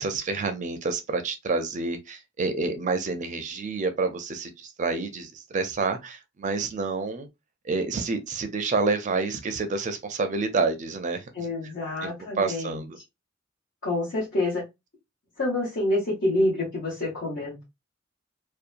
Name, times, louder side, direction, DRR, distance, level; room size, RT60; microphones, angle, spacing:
voice 1, 0.0-7.3 7.6-11.2 11.6-11.7 12.0-12.1 12.4-13.0, right 4 dB, 40° right, 0.4 m, -28 dB
voice 2, 11.3-12.8 13.8-14.6 15.4-17.6, left 1 dB, 65° left, 1.3 m, -27 dB
2.8 x 2.2 x 2.5 m
head